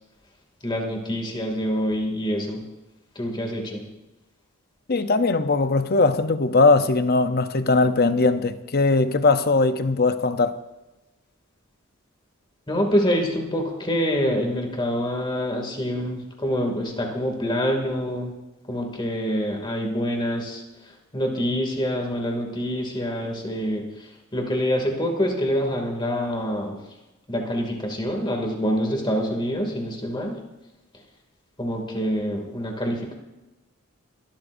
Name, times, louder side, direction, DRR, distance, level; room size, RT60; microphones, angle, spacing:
voice 1, 0.6-2.6 3.2-3.8 12.7-18.3 18.7-20.6 21.1-26.8 27.3-30.3 31.6-33.1, equal, 20° left, 2.5 m, -26 dB
voice 2, 4.9-10.5, left 3 dB, 45° left, 0.7 m, -20 dB
23.5 x 13.0 x 2.7 m
head